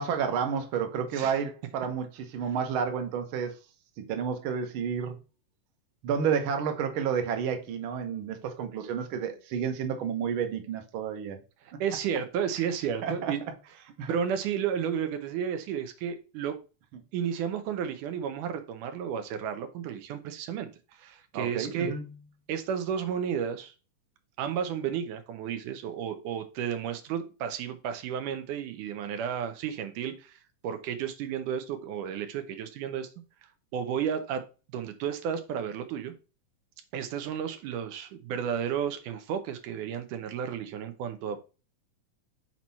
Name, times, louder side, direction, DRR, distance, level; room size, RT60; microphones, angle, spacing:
voice 1, 0.0-3.6 4.0-5.2 6.0-11.4 13.0-13.3 14.0-14.1 21.3-22.0, right 7 dB, 60° right, 1.5 m, -30 dB
voice 2, 11.8-13.4 14.1-16.6 17.1-21.9 22.5-23.7 24.4-33.1 33.7-34.5 34.7-36.1 36.9-41.4, right 8 dB, 85° right, 2.5 m, -32 dB
5.9 x 4.5 x 4.1 m
omnidirectional pair, 3.5 m